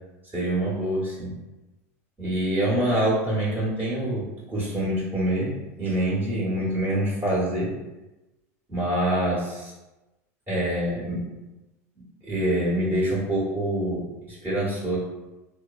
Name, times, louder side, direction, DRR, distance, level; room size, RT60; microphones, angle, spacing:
voice 1, 0.3-1.4 2.2-7.7 8.7-9.7 10.5-11.2 12.2-14.1 14.4-15.0, right 1 dB, 20° right, -8 dB, 1.3 m, -25 dB
3.0 x 2.0 x 2.4 m, 1.0 s
hypercardioid pair, 100°, 8 cm